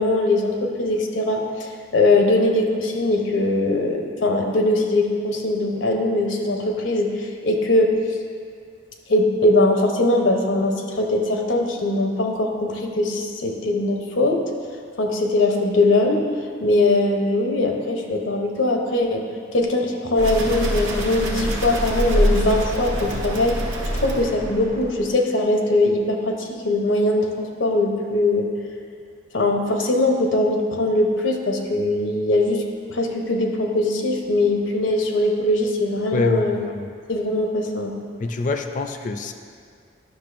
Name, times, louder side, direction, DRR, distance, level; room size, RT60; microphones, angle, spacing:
voice 1, 0.0-8.0 9.1-14.4 15.0-16.3 16.6-19.2 19.5-23.6 23.9-28.5 29.3-32.6 32.9-36.6 37.1-38.0, left 2 dB, 80° left, 2 dB, 0.8 m, -21 dB
sound 1, 20.2-25.2, right 1 dB, 80° right, 1.2 m, -25 dB
voice 2, 36.1-36.9 38.2-39.3, left 3 dB, 40° left, 6 dB, 0.4 m, -25 dB
10.5 x 6.2 x 2.5 m, 2.1 s
head